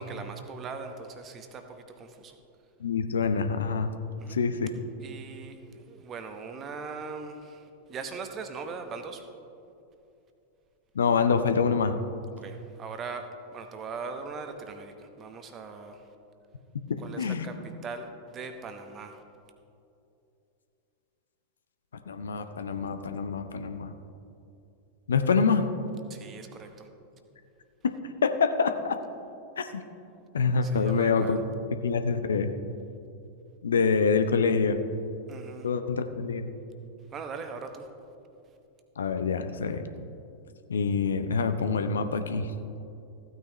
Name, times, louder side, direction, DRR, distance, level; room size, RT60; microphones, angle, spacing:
voice 1, 0.0-2.4 4.2-4.4 5.0-9.3 12.4-16.1 17.0-19.2 26.1-26.9 30.6-31.4 35.3-35.7 37.1-37.9, right 4 dB, 30° right, 7 dB, 1.0 m, -40 dB
voice 2, 2.8-3.9 4.3-4.7 10.9-12.0 16.9-17.5 22.1-23.9 25.1-25.7 27.8-27.9 28.2-29.0 29.6-29.8 30.3-31.4 31.8-32.5 33.6-34.8 35.6-36.5 39.0-39.8 40.7-42.5, left 5 dB, 70° left, 9 dB, 0.6 m, -26 dB
15.0 x 9.0 x 3.1 m, 2.7 s
figure-of-eight pair, 90°, 0 cm